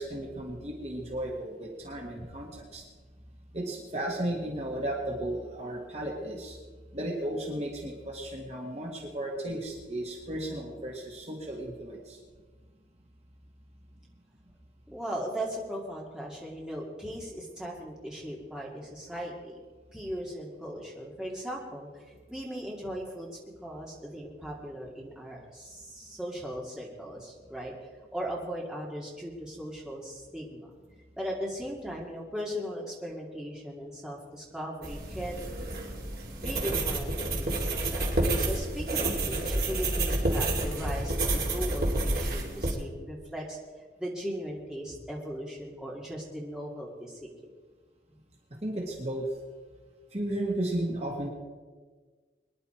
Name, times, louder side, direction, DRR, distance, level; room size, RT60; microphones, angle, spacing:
voice 1, 0.0-2.8 3.5-6.6 6.9-12.2 48.6-49.3 50.1-51.3, right 1 dB, 35° right, 0 dB, 1.9 m, -34 dB
voice 2, 14.9-19.6 19.9-23.3 23.6-27.7 28.1-30.7 31.2-35.4 36.4-43.6 44.0-47.3, equal, 5° right, -3 dB, 2.5 m, -38 dB
sound 1, 34.8-42.7, right 2 dB, 55° right, 2.9 m, -29 dB
23.5 x 10.5 x 4.5 m, 1.5 s
head